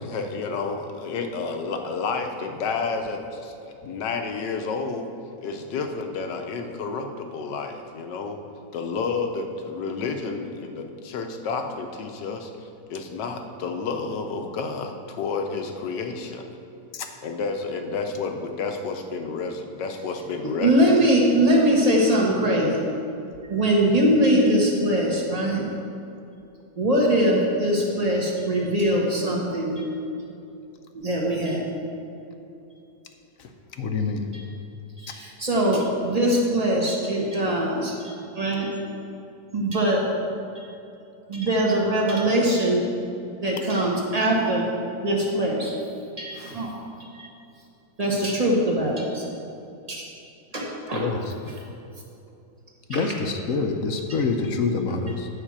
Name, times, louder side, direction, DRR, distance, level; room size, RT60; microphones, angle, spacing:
voice 1, 0.0-5.0 5.4-8.4 8.7-16.5 17.2-21.0, left 4 dB, 80° left, 5 dB, 1.5 m, -30 dB
voice 2, 20.4-22.8 23.5-25.7 26.8-29.8 30.9-31.7 35.0-37.9 38.4-38.7 39.5-40.0 41.3-42.9 43.4-44.7 45.0-45.7 46.2-46.7 47.1-47.3 48.0-49.3 49.9-50.0 50.5-51.1 51.4-51.5 52.9-53.1, right 1 dB, 25° right, -2 dB, 1.4 m, -22 dB
voice 3, 33.8-34.2 50.9-51.2 52.9-55.3, left 4 dB, 60° left, 5 dB, 1.0 m, -26 dB
10.0 x 5.6 x 7.4 m, 2.7 s
omnidirectional pair, 1.9 m